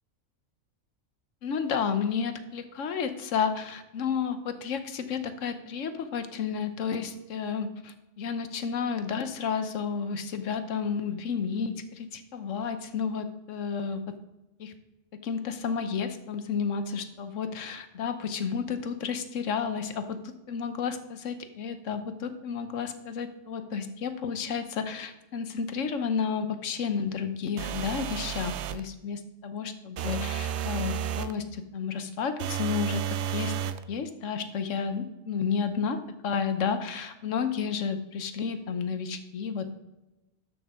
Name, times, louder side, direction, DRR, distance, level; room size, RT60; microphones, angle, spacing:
voice 1, 1.4-14.2 14.6-14.7 15.2-33.5 33.9-39.7, left 6 dB, 70° left, 10 dB, 1.2 m, -31 dB
sound 1, 27.6-28.9 30.0-31.4 32.4-33.8, right 10 dB, 65° right, 0.8 m, -32 dB
12.5 x 6.1 x 3.6 m, 1.0 s
omnidirectional pair, 1.4 m